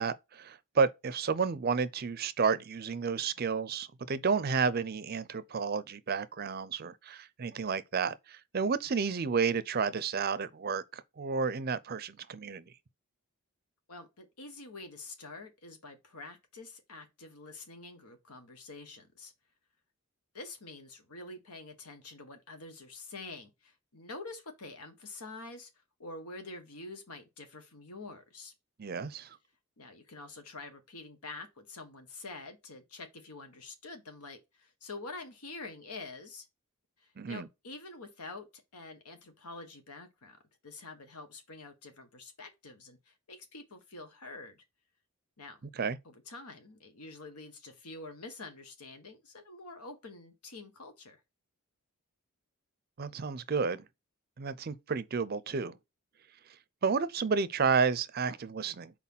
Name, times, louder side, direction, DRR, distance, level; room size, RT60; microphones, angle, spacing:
voice 1, 0.0-12.6 28.8-29.4 37.2-37.5 45.7-46.0 53.0-53.8 54.4-55.8 56.8-58.9, right 5 dB, 45° right, 0.5 m, -31 dB
voice 2, 13.9-19.3 20.3-25.7 26.0-28.5 29.8-36.4 37.0-40.4 40.6-44.6 45.4-45.6 46.0-51.2, left 3 dB, 90° left, 1.4 m, -47 dB
4.4 x 4.2 x 5.6 m
head